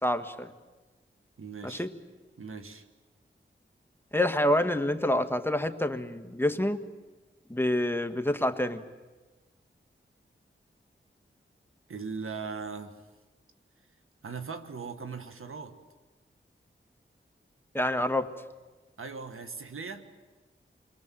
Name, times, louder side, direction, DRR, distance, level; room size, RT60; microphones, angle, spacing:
voice 1, 0.0-0.5 1.6-1.9 4.1-6.8 7.5-8.8 17.7-18.3, left 1 dB, 10° left, 7 dB, 1.6 m, -27 dB
voice 2, 1.4-1.9 2.4-2.8 11.9-13.0 14.2-15.8 19.0-20.1, right 5 dB, 85° right, 8 dB, 1.7 m, -39 dB
28.5 x 22.0 x 7.7 m, 1.2 s
cardioid pair, 50°, 21 cm